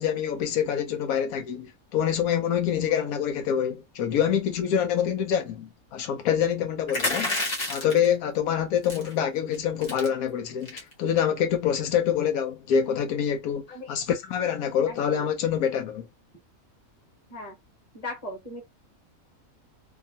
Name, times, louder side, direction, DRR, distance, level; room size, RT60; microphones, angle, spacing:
voice 1, 0.0-7.4 7.7-16.1, left 8 dB, 85° left, 1.1 m, -26 dB
sound 1, 6.9-8.1 8.8-9.1 9.5-9.6 9.8-10.1 10.6-10.9, left 2 dB, 50° left, 1.1 m, -29 dB
voice 2, 13.7-14.0 14.9-15.2 17.3-17.6 17.9-18.6, left 1 dB, 25° left, 1.3 m, -38 dB
2.9 x 2.3 x 2.6 m
omnidirectional pair, 1.5 m